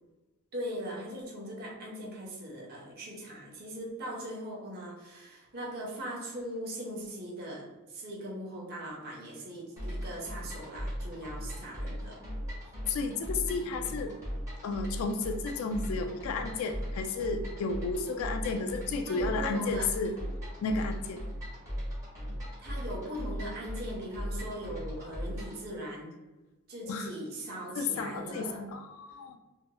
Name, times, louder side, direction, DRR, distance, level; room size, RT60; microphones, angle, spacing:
voice 1, 0.5-12.2 19.1-19.9 22.6-26.1 26.7-28.6, equal, 50° right, -3 dB, 0.8 m, -40 dB
sound 1, 9.8-25.6, equal, 15° right, 1.0 m, -38 dB
voice 2, 12.9-14.1 14.6-20.1 20.6-21.2 26.8-27.1 27.8-29.4, left 3 dB, 75° left, 6 dB, 0.3 m, -32 dB
2.9 x 2.7 x 2.2 m, 1.1 s
head